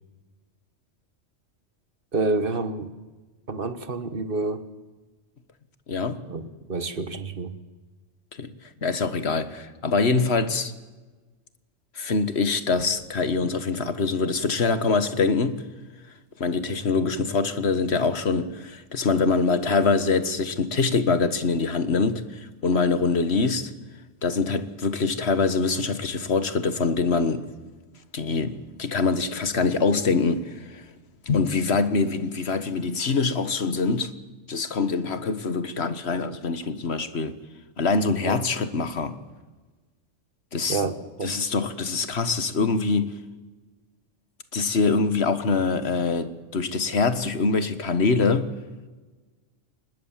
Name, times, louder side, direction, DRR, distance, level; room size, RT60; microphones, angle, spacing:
voice 1, 2.1-2.9 3.5-4.7 6.3-7.6 38.2-38.4 38.8-38.9 40.7-41.4, right 3 dB, 45° right, 1.6 m, -28 dB
voice 2, 5.9-6.2 8.3-8.5 8.8-10.7 12.0-15.6 16.4-23.7 24.2-27.5 28.1-30.8 31.3-34.1 34.5-37.4 37.8-39.2 40.5-40.8 41.2-43.2 44.5-48.5, left 4 dB, 55° left, 1.7 m, -24 dB
24.5 x 20.5 x 7.5 m
omnidirectional pair, 1.3 m